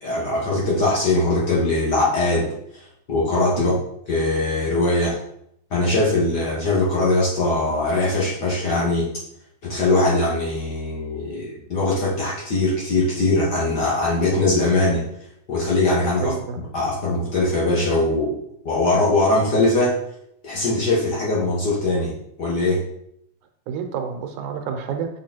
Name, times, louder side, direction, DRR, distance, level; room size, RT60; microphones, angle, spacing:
voice 1, 0.0-3.7 4.1-5.2 5.7-9.1 9.6-15.0 15.5-16.3 16.7-18.4 18.6-20.0 20.4-22.8, left 2 dB, 40° left, -5 dB, 1.8 m, -21 dB
voice 2, 16.2-16.6 23.7-25.1, right 6 dB, 85° right, 5 dB, 2.4 m, -29 dB
7.3 x 5.3 x 4.4 m, 0.74 s
omnidirectional pair, 3.4 m